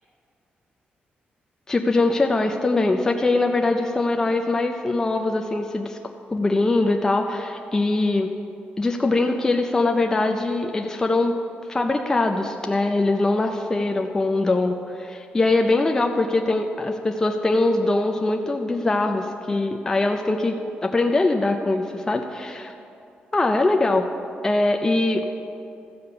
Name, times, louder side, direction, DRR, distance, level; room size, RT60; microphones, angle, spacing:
voice 1, 1.7-6.0 6.3-8.3 8.8-11.4 11.7-20.6 20.8-22.7 23.3-24.1 24.4-25.2, left 2 dB, 15° left, 4 dB, 0.5 m, -22 dB
14.0 x 5.0 x 7.0 m, 2.6 s
wide cardioid pair, 150°, 3 cm